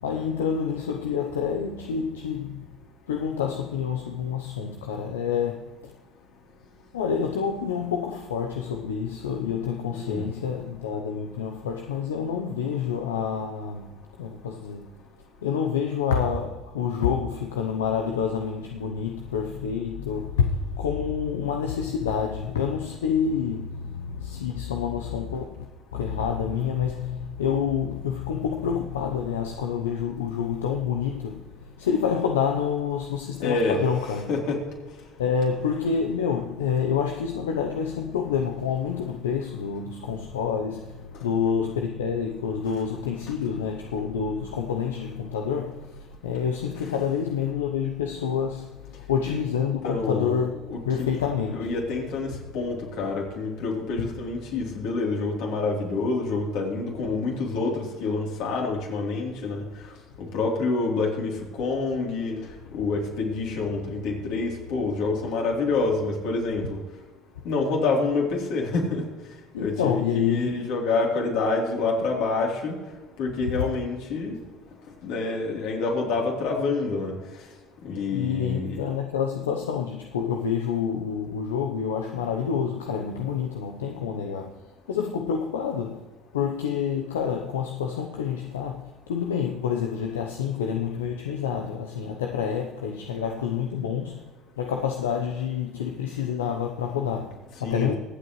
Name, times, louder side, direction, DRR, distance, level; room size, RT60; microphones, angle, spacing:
voice 1, 0.0-2.7 3.1-5.9 6.9-13.9 14.2-14.9 15.4-25.7 25.9-34.3 35.2-51.8 69.5-70.7 73.5-73.6 78.1-84.6 84.9-86.0 86.3-94.2 94.6-97.9, left 7 dB, 85° left, 0.8 m, -28 dB
voice 2, 9.9-10.3 33.4-33.8 34.3-34.6 49.2-49.4 49.8-50.4 50.7-50.8 51.1-51.2 51.5-59.6 60.2-62.4 62.7-66.8 67.4-69.0 69.6-70.0 70.3-72.8 73.2-74.4 75.0-77.1 77.8-78.8 97.6-97.9, left 3 dB, 65° left, 3.4 m, -27 dB
24.0 x 8.1 x 3.2 m
hypercardioid pair, 70°, 0 cm